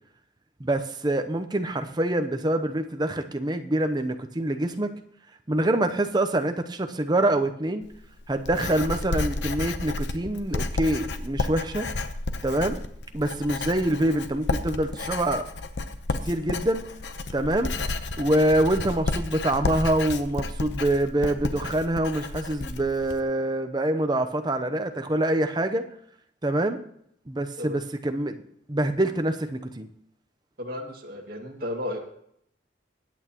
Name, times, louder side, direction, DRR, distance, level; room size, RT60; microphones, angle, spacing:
voice 1, 0.6-4.9 5.5-7.8 8.3-11.9 12.4-12.8 13.1-15.5 16.1-16.9 17.3-17.8 18.2-25.9 26.4-26.8 27.3-28.4 28.7-29.9, right 1 dB, 25° right, 7 dB, 0.7 m, -25 dB
Writing, 7.8-23.2, left 2 dB, 70° left, 0.9 m, -32 dB
voice 2, 30.6-32.0, left 1 dB, 55° right, 0 dB, 2.1 m, -34 dB
22.0 x 8.9 x 3.0 m, 0.71 s
head